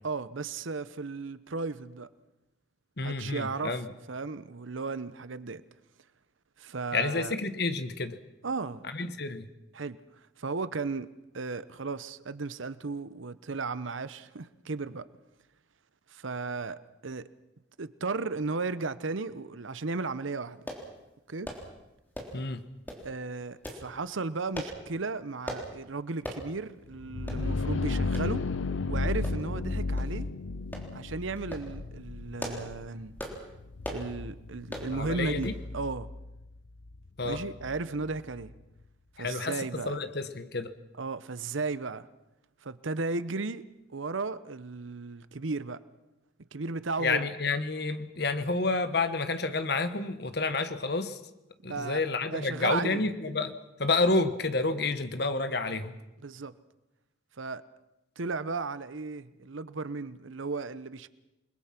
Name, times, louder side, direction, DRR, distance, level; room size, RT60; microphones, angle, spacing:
voice 1, 0.0-2.1 3.0-3.8 4.1-5.6 6.6-7.3 8.4-8.9 9.7-11.1 11.3-15.1 16.1-17.3 17.8-20.6 21.3-21.5 23.0-28.4 28.9-30.3 30.9-33.2 33.9-36.1 37.2-38.5 39.2-40.0 41.0-42.1 42.6-43.6 43.9-45.8 46.5-47.3 51.6-52.0 52.3-53.0 56.2-56.5 57.4-57.6 58.2-61.1, right 3 dB, 75° right, 0.8 m, -35 dB
voice 2, 3.0-3.9 6.9-8.2 8.8-9.5 22.3-22.6 34.9-35.5 37.2-37.4 39.2-40.7 47.0-51.2 51.6-56.0, left 3 dB, 55° left, 1.3 m, -30 dB
sound 1, 20.7-20.9 21.4-21.7 22.1-22.4 22.9-23.1 23.6-23.8 24.5-24.8 25.5-25.7 26.2-26.4 26.8-26.9 27.3-27.4 28.1-28.3 29.2-29.6 30.0-30.1 30.7-30.9 31.4-31.7 32.2-32.7 33.2-33.4 33.8-34.1 34.7-34.9 35.4-35.6 35.9-36.0, equal, 10° left, 3.4 m, -38 dB
sound 2, 26.9-38.5, left 3 dB, 75° left, 0.8 m, -34 dB
28.5 x 21.5 x 6.0 m
head